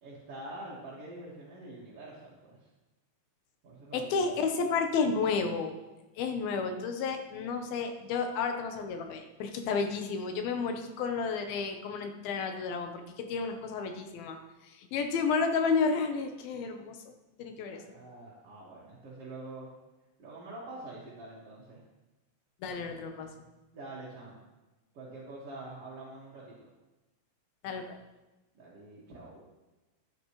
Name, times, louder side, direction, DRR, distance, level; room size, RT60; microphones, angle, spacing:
voice 1, 0.0-2.7 3.6-4.3 17.7-19.7 20.2-21.8 23.7-24.4 24.9-26.7 28.5-29.4, right 2 dB, 45° right, -7 dB, 2.5 m, -46 dB
voice 2, 3.9-5.7 6.2-14.4 14.6-17.0 17.4-17.8 22.6-23.3 27.6-28.0, left 5 dB, 85° left, 5 dB, 2.9 m, -31 dB
14.0 x 10.0 x 3.2 m, 1.1 s
omnidirectional pair, 4.2 m